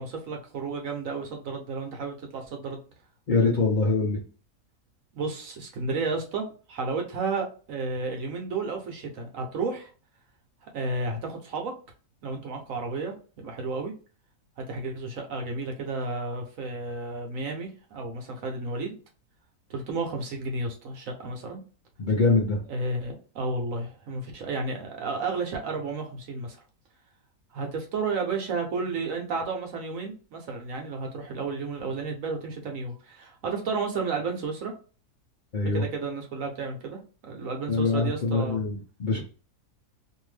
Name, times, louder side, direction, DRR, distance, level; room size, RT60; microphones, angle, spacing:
voice 1, 0.0-2.8 5.1-9.9 10.6-11.7 12.2-13.9 14.6-19.0 19.7-21.6 22.7-26.6 27.5-34.7 35.7-38.6, right 3 dB, 65° right, 2 dB, 1.1 m, -32 dB
voice 2, 3.3-4.2 22.0-22.6 35.5-35.8 37.7-39.2, left 3 dB, 45° left, -3 dB, 0.6 m, -24 dB
2.7 x 2.6 x 3.2 m, 0.37 s
omnidirectional pair, 1.6 m